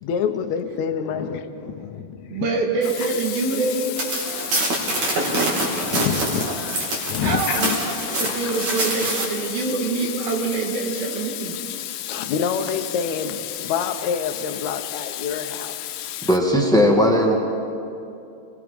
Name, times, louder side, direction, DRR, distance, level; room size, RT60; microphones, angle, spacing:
voice 1, 0.0-2.5 5.1-5.2 5.9-6.5 7.1-8.6 9.0-9.2 12.1-15.8, left 7 dB, 65° left, 6 dB, 1.9 m, -27 dB
voice 2, 2.3-4.3 5.2-5.5 7.2-11.6, right 3 dB, 75° right, 1 dB, 3.5 m, -25 dB
Water tap faucet / Sink (filling or washing), 2.8-16.4, left 12 dB, 85° left, 2.7 m, -33 dB
sound 1, 4.0-9.2, right 2 dB, 50° right, 4.5 m, -25 dB
voice 3, 16.2-17.3, equal, ahead, 0 dB, 1.0 m, -17 dB
28.0 x 21.5 x 5.3 m, 2.7 s
omnidirectional pair, 4.3 m